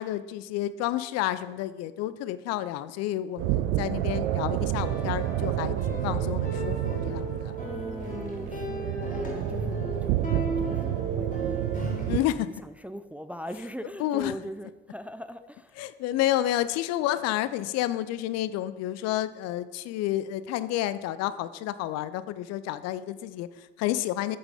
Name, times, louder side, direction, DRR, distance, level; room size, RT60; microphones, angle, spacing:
voice 1, 0.0-7.5 12.1-12.5 14.0-14.3 15.8-24.4, left 13 dB, 60° left, 0.5 m, -30 dB
sound 1, 3.4-12.2, right 14 dB, 65° right, 0.5 m, -29 dB
sound 2, 4.8-12.1, equal, 25° left, 3.0 m, -35 dB
voice 2, 7.6-15.9, equal, 5° right, 0.4 m, -41 dB
7.7 x 6.8 x 5.1 m
figure-of-eight pair, 50°, 30 cm